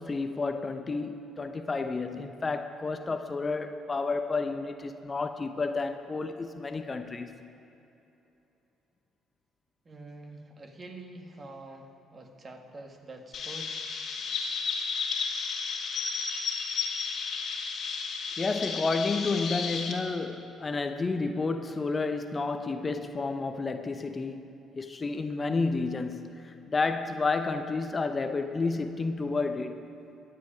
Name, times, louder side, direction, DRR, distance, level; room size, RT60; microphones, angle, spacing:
voice 1, 0.0-7.5 18.4-29.9, left 3 dB, 30° left, 0.8 m, -31 dB
voice 2, 9.9-13.7, right 2 dB, 35° right, 1.7 m, -46 dB
Chirp tweet, 13.3-19.9, left 5 dB, 55° left, 1.6 m, -33 dB
22.0 x 7.8 x 5.1 m
hypercardioid pair, 50°, 0 cm